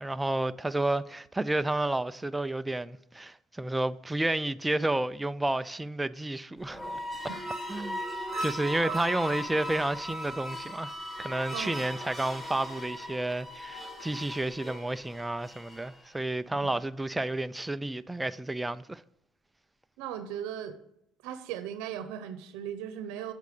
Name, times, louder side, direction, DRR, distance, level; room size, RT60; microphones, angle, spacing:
voice 1, 0.0-6.8 7.7-8.0 8.4-10.9 11.2-19.0, right 2 dB, 10° right, 0.3 m, -31 dB
sound 1, 6.6-16.0, equal, 10° left, 1.6 m, -38 dB
voice 2, 11.5-11.8 20.0-20.8 21.2-23.3, right 10 dB, 85° right, 0.7 m, -38 dB
8.2 x 6.7 x 6.7 m
cardioid pair, 110°, 0 cm